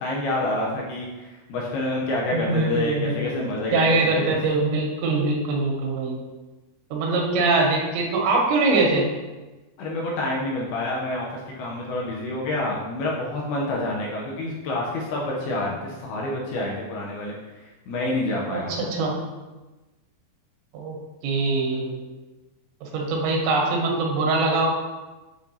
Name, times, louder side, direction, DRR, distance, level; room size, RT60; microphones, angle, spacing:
voice 1, 0.0-4.4 9.8-17.3 17.9-18.8, left 2 dB, 80° left, -3 dB, 2.5 m, -28 dB
voice 2, 2.3-3.4 3.7-6.2 6.9-9.1 18.5-19.3 20.7-22.1 22.8-24.7, right 3 dB, 80° right, 0 dB, 3.2 m, -23 dB
8.1 x 4.2 x 2.7 m, 1.2 s
omnidirectional pair, 5.1 m